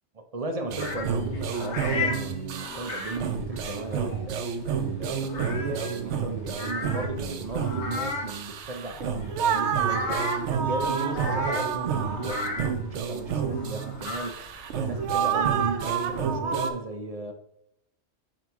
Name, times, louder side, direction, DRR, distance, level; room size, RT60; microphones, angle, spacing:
voice 1, 0.3-14.4 14.7-17.3, right 3 dB, 45° right, 6 dB, 0.5 m, -36 dB
sound 1, 0.7-16.7, right 6 dB, 85° right, 0.9 m, -29 dB
sound 2, 0.8-16.2, left 3 dB, 90° left, 1.2 m, -37 dB
7.5 x 2.8 x 4.7 m, 0.83 s
omnidirectional pair, 1.1 m